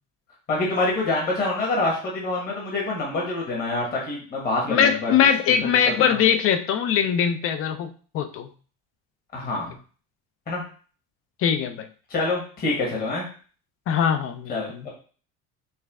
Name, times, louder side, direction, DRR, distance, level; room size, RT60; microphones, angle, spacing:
voice 1, 0.5-5.1 6.0-6.2 9.3-9.8 10.5-10.6 12.1-13.2 14.5-14.9, left 2 dB, 30° left, -4 dB, 1.4 m, -26 dB
voice 2, 4.7-7.9 8.1-8.5 11.4-11.9 13.9-14.9, left 8 dB, 45° left, 10 dB, 0.5 m, -21 dB
5.5 x 2.3 x 3.5 m, 0.41 s
cardioid pair, 145°, 32 cm